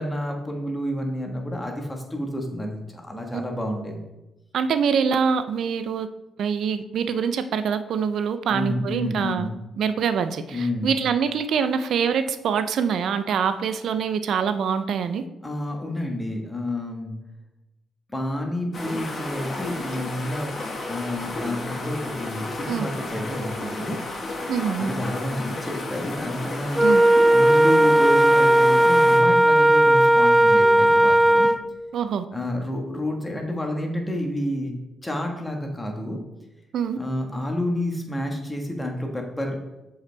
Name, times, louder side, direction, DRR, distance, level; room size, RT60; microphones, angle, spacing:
voice 1, 0.0-4.0 8.5-9.6 10.5-11.0 15.4-17.1 18.1-20.5 20.9-24.0 24.8-26.8 27.3-31.5 32.3-34.7 35.0-36.2 36.9-39.6, left 1 dB, 15° left, 2 dB, 1.3 m, -29 dB
voice 2, 4.5-6.1 6.4-9.5 9.8-15.2 22.7-22.9 24.5-24.9 26.8-27.0 31.9-32.3 36.7-37.0, right 6 dB, 70° right, 11 dB, 0.5 m, -24 dB
sound 1, 18.7-29.2, left 2 dB, 45° left, 1.7 m, -33 dB
Wind instrument woodwind instrument, 26.8-31.6, right 1 dB, 10° right, 0.4 m, -16 dB
6.8 x 5.5 x 3.3 m, 0.97 s
cardioid pair, 95°, 0 cm